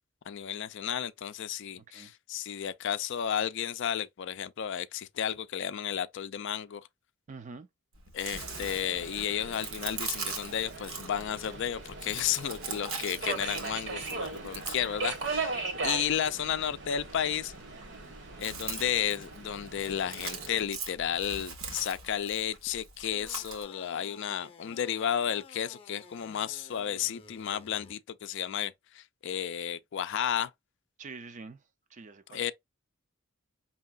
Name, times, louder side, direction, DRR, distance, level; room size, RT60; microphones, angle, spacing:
voice 1, 0.3-6.8 8.1-17.5 18.4-30.5 32.3-32.5, left 9 dB, 60° left, 0.4 m, -33 dB
voice 2, 7.3-7.7 15.6-16.2 31.0-31.6 31.9-32.5, right 4 dB, 35° right, 0.5 m, -46 dB
Chewing mastication, 7.9-23.6, right 5 dB, 85° right, 1.3 m, -42 dB
Subway metro underground, 8.3-20.7, right 3 dB, 60° right, 1.1 m, -39 dB
sound 1, 23.1-27.9, left 4 dB, 25° left, 0.7 m, -53 dB
5.4 x 2.9 x 2.4 m
head